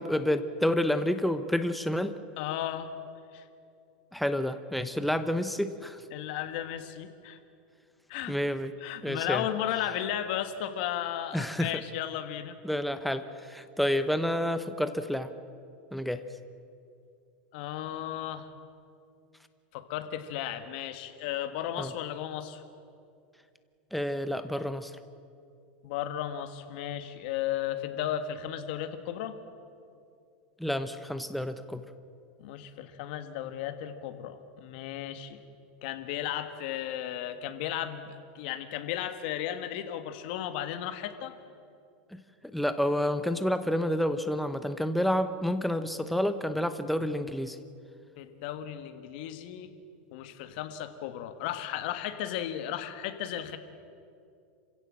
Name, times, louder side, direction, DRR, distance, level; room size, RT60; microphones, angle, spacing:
voice 1, 0.0-2.1 4.1-6.0 8.3-8.7 9.0-9.5 11.3-11.7 12.6-15.3 15.9-16.2 21.8-21.9 23.9-24.9 30.6-31.8 42.1-42.2 42.5-47.6, left 1 dB, ahead, 10 dB, 0.8 m, -29 dB
voice 2, 2.4-2.9 3.3-3.4 6.1-7.4 8.1-8.4 8.8-12.6 17.5-18.5 19.7-22.6 25.8-29.3 32.4-35.4 35.8-41.3 48.2-49.7 50.1-53.6, left 11 dB, 60° left, 9 dB, 1.7 m, -35 dB
27.0 x 16.5 x 7.6 m, 2.5 s
supercardioid pair, 145°, 6 cm